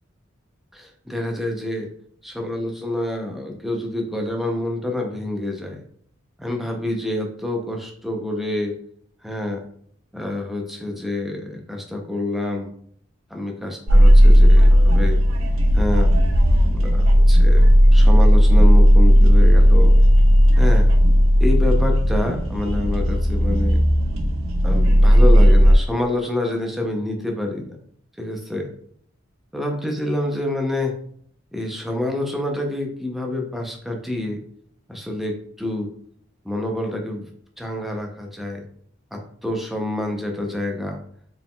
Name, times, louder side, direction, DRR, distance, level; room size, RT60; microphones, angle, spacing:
voice 1, 0.7-1.9 2.2-5.8 6.4-8.8 9.2-9.6 10.1-12.7 13.3-15.2 15.7-16.1 16.7-19.9 20.6-20.9 21.4-23.8 24.6-27.8 28.2-28.7 29.5-30.9 31.5-34.4 34.9-35.9 36.4-37.3 37.6-38.6 39.1-41.0, left 1 dB, ahead, 1 dB, 0.5 m, -27 dB
sound 1, 13.9-25.8, equal, 90° right, 0.6 m, -14 dB
4.0 x 3.7 x 2.2 m, 0.62 s
head